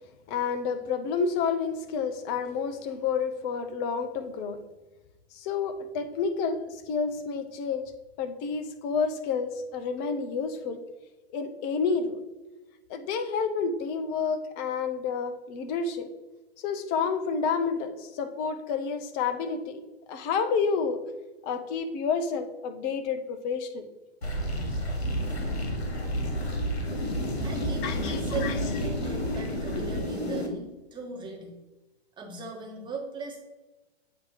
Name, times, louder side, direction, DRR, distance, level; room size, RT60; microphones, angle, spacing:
voice 1, 0.3-4.6 5.3-7.8 8.2-10.8 11.3-12.2 12.9-16.1 16.6-19.8 20.1-21.0 21.4-23.9 27.8-28.6 29.2-29.3 29.7-29.8, left 5 dB, 30° left, 9 dB, 0.7 m, -29 dB
sound 1, 24.2-30.5, equal, 90° left, 1.5 m, -30 dB
voice 2, 27.4-31.6 32.2-33.4, right 4 dB, 15° right, 0 dB, 1.3 m, -39 dB
8.1 x 2.9 x 4.8 m, 1.1 s
hypercardioid pair, 115°, 32 cm